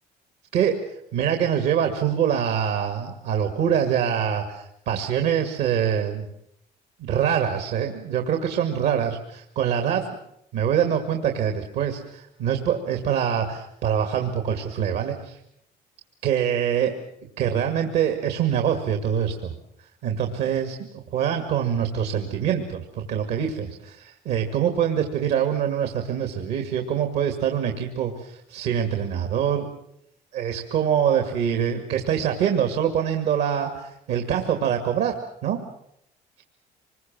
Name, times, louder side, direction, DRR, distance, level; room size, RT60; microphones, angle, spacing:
voice 1, 0.5-0.8 1.1-6.2 7.0-10.1 10.5-15.4 16.2-17.0 17.4-19.6 20.0-20.8 21.1-29.7 30.3-35.1 35.4-35.6, right 8 dB, 85° right, 6 dB, 2.2 m, -24 dB
25.5 x 21.5 x 7.5 m, 0.75 s
cardioid pair, 110°, 17 cm